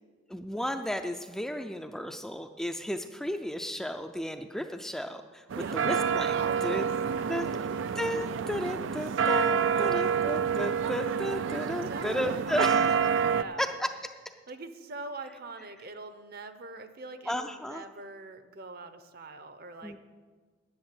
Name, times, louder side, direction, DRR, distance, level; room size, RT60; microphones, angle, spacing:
voice 1, 0.3-5.4 5.7-6.9 7.3-7.5 8.0-12.9 13.6-13.9 17.3-17.8 19.8-20.0, equal, ahead, 6 dB, 0.4 m, -33 dB
sound 1, 5.5-13.4, right 7 dB, 75° right, 0.4 m, -28 dB
voice 2, 6.4-6.9 7.2-7.9 9.6-10.2 11.8-12.9 13.2-13.8 14.5-20.0, right 3 dB, 50° right, 10 dB, 0.8 m, -43 dB
10.5 x 6.7 x 9.0 m, 1.5 s
head